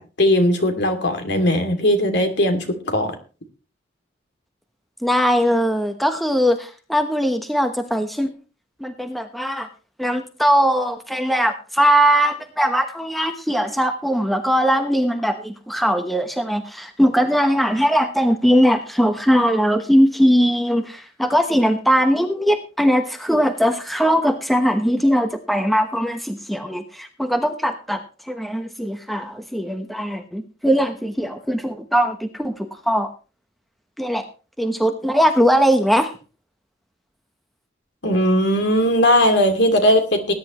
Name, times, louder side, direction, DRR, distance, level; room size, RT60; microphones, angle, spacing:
voice 1, 0.0-3.1 38.0-40.3, equal, 65° left, 6 dB, 2.7 m, -18 dB
voice 2, 5.0-8.3 8.8-9.7 10.0-28.0 28.3-33.1 34.0-34.2 34.6-36.1, equal, ahead, 6 dB, 1.1 m, -20 dB
19.5 x 10.5 x 3.1 m, 0.34 s
head